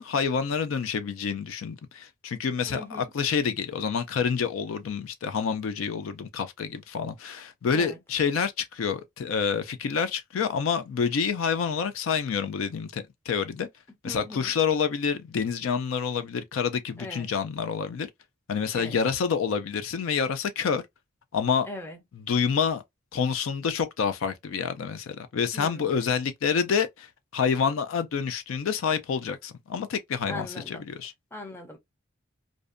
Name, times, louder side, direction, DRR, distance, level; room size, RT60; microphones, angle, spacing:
voice 1, 0.0-13.7 14.0-18.1 18.5-20.8 21.3-21.7 22.3-22.8 23.1-27.1 27.3-31.1, left 6 dB, 80° left, 0.4 m, -28 dB
voice 2, 2.7-3.1 7.7-8.0 14.0-14.5 17.0-17.3 18.7-19.0 21.6-22.0 25.5-25.9 30.3-30.8 31.3-31.8, left 2 dB, 10° left, 0.5 m, -40 dB
2.6 x 2.1 x 2.4 m
head